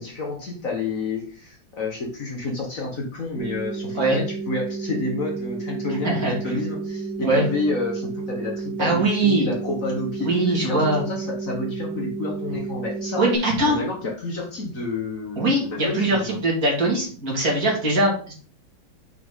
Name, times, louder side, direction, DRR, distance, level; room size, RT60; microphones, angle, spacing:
voice 1, 0.0-13.2 13.7-16.4, left 3 dB, 45° left, 0 dB, 1.6 m, -29 dB
sound 1, 3.4-13.4, right 4 dB, 5° right, 1.6 m, -31 dB
voice 2, 8.8-9.5 10.2-11.0 13.2-13.8 15.4-18.3, right 2 dB, 50° right, -2 dB, 2.6 m, -21 dB
6.2 x 5.9 x 3.7 m, 0.42 s
omnidirectional pair, 2.1 m